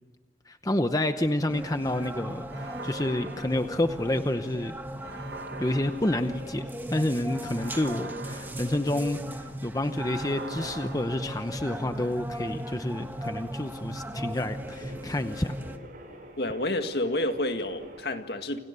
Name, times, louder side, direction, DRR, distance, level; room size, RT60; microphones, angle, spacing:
voice 1, 0.5-4.8 5.6-15.6, left 1 dB, 20° left, 8 dB, 0.8 m, -29 dB
sound 1, 1.5-15.8, equal, 10° right, 1.5 m, -37 dB
sound 2, 2.5-4.3 5.0-6.8 7.5-9.4 10.0-11.9, right 3 dB, 65° right, 1.5 m, -43 dB
sound 3, 10.7-18.1, right 1 dB, 50° right, 7.3 m, -50 dB
voice 2, 16.4-18.6, left 1 dB, 60° left, 7 dB, 2.0 m, -29 dB
29.5 x 28.0 x 6.9 m, 1.2 s
head